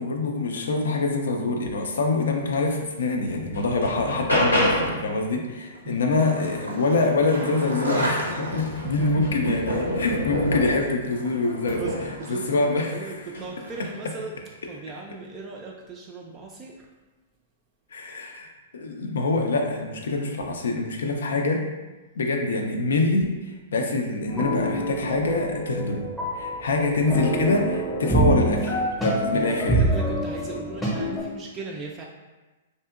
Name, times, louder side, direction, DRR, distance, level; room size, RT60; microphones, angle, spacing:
voice 1, 0.0-11.8 12.3-13.2 17.9-18.5 18.7-21.7 22.2-23.3 23.7-29.9, left 3 dB, 70° left, 2 dB, 0.4 m, -25 dB
sound 1, 2.7-2.8 3.3-5.1 7.5-7.6 8.0-11.0 11.7-12.2 13.2-13.5, equal, 85° left, 0.9 m, -27 dB
Skateboard, 5.7-14.1, right 1 dB, 85° right, 0.5 m, -35 dB
voice 2, 8.8-9.8 11.4-14.4 14.6-16.7 29.2-32.0, right 3 dB, 25° right, -1 dB, 0.3 m, -38 dB
sound 2, 24.3-31.2, right 1 dB, 5° left, 0.7 m, -26 dB
2.7 x 2.6 x 2.4 m, 1.2 s
figure-of-eight pair, 110°, 0 cm